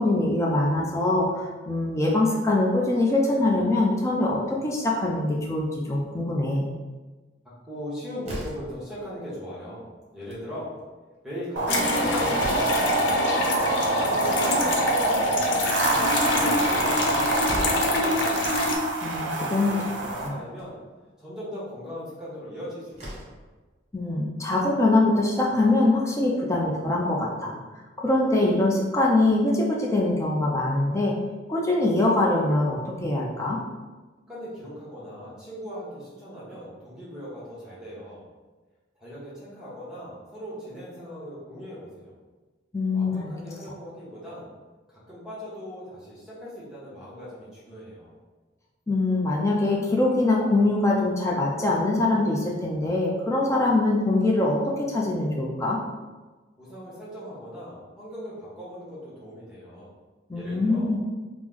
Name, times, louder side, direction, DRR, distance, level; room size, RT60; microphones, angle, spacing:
voice 1, 0.0-6.7 19.0-19.8 20.2-20.4 23.9-27.6 28.0-31.1 31.5-33.6 42.7-43.3 48.9-55.8 60.3-61.0, left 2 dB, 15° left, -3 dB, 0.4 m, -23 dB
voice 2, 7.6-9.9 10.1-10.7 11.2-13.5 13.9-18.4 19.2-20.8 21.2-23.3 34.3-38.3 39.0-42.1 42.9-44.5 45.1-48.1 56.6-59.9 60.3-61.0, equal, 5° right, -8 dB, 1.0 m, -39 dB
Slam, 8.2-8.8 10.1-10.5 10.8-10.9 11.1-11.2 11.8-12.9 14.7-15.4 17.0-17.1 17.4-17.9 19.1-19.2 19.6-19.7 20.4-20.7 22.4-22.5 22.9-23.5, equal, 35° right, 0.8 m, -37 dB
sound 1, 11.6-20.3, right 2 dB, 85° right, 0.5 m, -25 dB
sound 2, 11.7-18.8, left 2 dB, 80° left, 0.4 m, -27 dB
3.1 x 2.0 x 3.5 m, 1.3 s
head